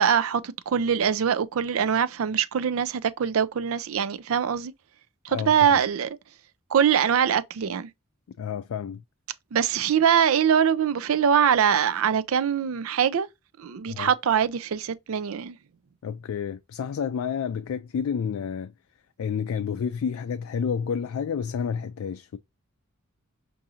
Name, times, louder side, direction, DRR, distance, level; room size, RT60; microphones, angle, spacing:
voice 1, 0.0-4.7 5.2-6.1 6.7-7.9 9.5-13.3 13.6-15.6, right 8 dB, 70° right, 0.4 m, -23 dB
voice 2, 5.3-5.8 8.4-9.0 13.9-14.1 16.0-18.7 19.2-22.4, left 7 dB, 75° left, 0.3 m, -30 dB
4.8 x 2.6 x 2.7 m
head